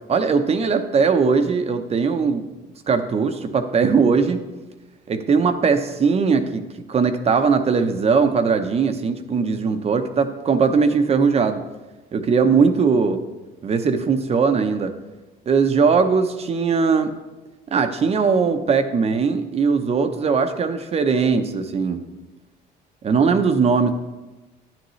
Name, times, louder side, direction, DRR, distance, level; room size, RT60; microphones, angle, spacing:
voice 1, 0.1-2.4 2.9-4.4 5.1-6.6 6.9-11.6 12.1-13.2 13.6-14.9 15.5-17.1 17.7-22.0 23.0-23.9, right 5 dB, 40° right, 8 dB, 0.8 m, -19 dB
10.5 x 9.0 x 3.2 m, 1.1 s
cardioid pair, 110°, 17 cm